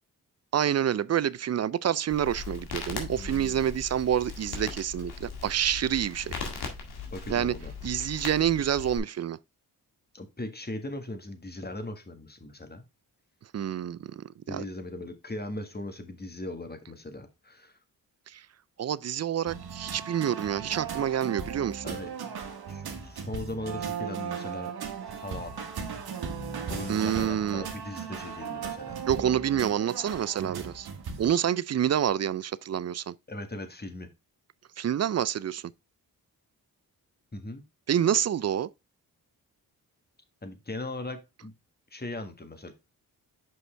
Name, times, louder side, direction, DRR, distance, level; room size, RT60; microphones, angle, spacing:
voice 1, 0.5-6.3 7.3-7.5 7.8-9.4 13.5-14.6 18.3-18.5 18.8-21.8 26.9-27.6 29.1-30.9 31.2-33.1 34.8-35.6 37.9-38.7, right 9 dB, 45° right, 0.4 m, -27 dB
Crackle, 2.1-9.0, left 4 dB, 90° left, 1.9 m, -39 dB
voice 2, 3.2-3.7 7.1-7.7 10.1-12.8 14.5-17.8 21.8-22.1 22.7-24.7 25.1-25.7 26.7-29.0 33.3-34.1 37.3-37.6 40.4-41.5 41.9-42.7, left 2 dB, 25° left, 1.7 m, -39 dB
sound 1, 19.5-31.3, right 6 dB, 75° right, 1.5 m, -37 dB
6.3 x 5.4 x 3.3 m
cardioid pair, 60°, 37 cm